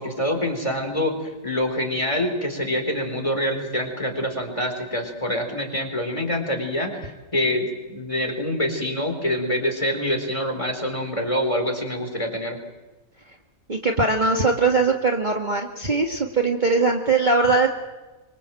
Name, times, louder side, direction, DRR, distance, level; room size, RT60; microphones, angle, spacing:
voice 1, 0.0-12.6, left 1 dB, 20° left, 4 dB, 4.5 m, -26 dB
voice 2, 13.7-17.7, right 3 dB, 30° right, 2 dB, 1.9 m, -21 dB
26.0 x 24.5 x 7.7 m, 1.2 s
omnidirectional pair, 1.5 m